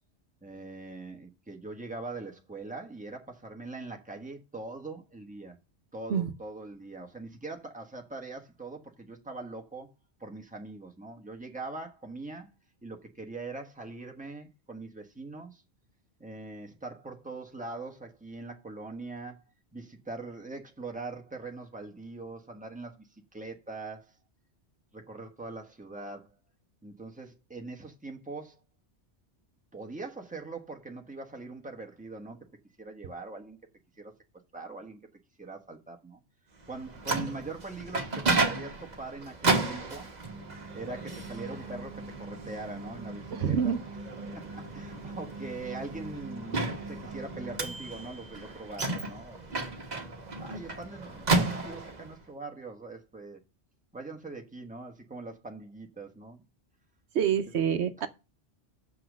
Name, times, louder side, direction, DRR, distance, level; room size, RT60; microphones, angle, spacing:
voice 1, 0.4-5.6 5.9-9.9 10.2-12.5 12.8-15.6 16.2-19.4 19.7-24.2 24.9-26.4 26.8-28.6 29.7-32.5 32.8-33.6 34.0-34.1 34.5-35.0 35.4-36.2 36.7-40.1 40.7-43.8 44.3-50.1 50.4-53.4 53.9-56.4 57.5-57.6 58.0-58.1, right 3 dB, 5° right, 1.2 m, -42 dB
Microwave oven, 36.7-52.1, right 3 dB, 40° right, 1.3 m, -33 dB
voice 2, 43.3-43.8 57.1-58.1, right 8 dB, 75° right, 1.0 m, -26 dB
6.6 x 5.9 x 6.2 m
omnidirectional pair, 1.2 m